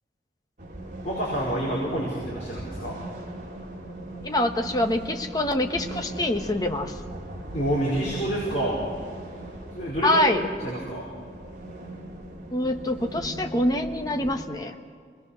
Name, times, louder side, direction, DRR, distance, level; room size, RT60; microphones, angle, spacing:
sound 1, 0.6-14.4, right 1 dB, 45° right, 2.4 m, -39 dB
voice 1, 1.0-3.0 7.5-8.8 9.7-11.1, right 1 dB, 40° left, -7 dB, 5.0 m, -28 dB
voice 2, 4.2-7.0 10.0-10.4 12.5-14.7, left 1 dB, 20° left, 4 dB, 1.2 m, -25 dB
26.0 x 20.0 x 6.5 m, 2.1 s
head